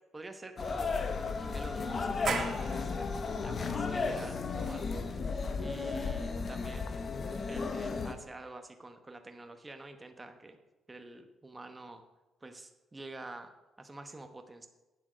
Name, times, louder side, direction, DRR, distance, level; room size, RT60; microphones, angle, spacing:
voice 1, 0.1-1.1 1.4-3.1 3.4-5.2 5.6-6.9 7.4-10.6 10.9-12.0 12.4-14.7, right 2 dB, 20° right, 6 dB, 1.0 m, -48 dB
sound 1, 0.6-8.1, left 4 dB, 45° left, 0.9 m, -34 dB
sound 2, 2.2-7.6, right 5 dB, 60° right, 1.3 m, -42 dB
8.9 x 7.2 x 5.1 m, 1.1 s
cardioid pair, 90°, 0 cm